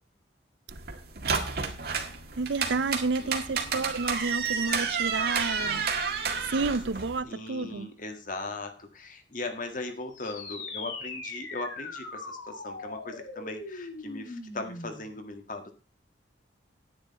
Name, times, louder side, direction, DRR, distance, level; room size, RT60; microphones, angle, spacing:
sound 1, 0.7-7.2, right 5 dB, 55° right, 1.8 m, -31 dB
voice 1, 2.4-5.9 6.4-7.9, right 3 dB, 75° right, 0.6 m, -30 dB
voice 2, 3.1-3.8 7.2-15.7, left 2 dB, 45° left, 1.7 m, -39 dB
sound 2, 10.1-15.1, left 3 dB, 90° left, 2.6 m, -40 dB
10.0 x 10.0 x 4.1 m
head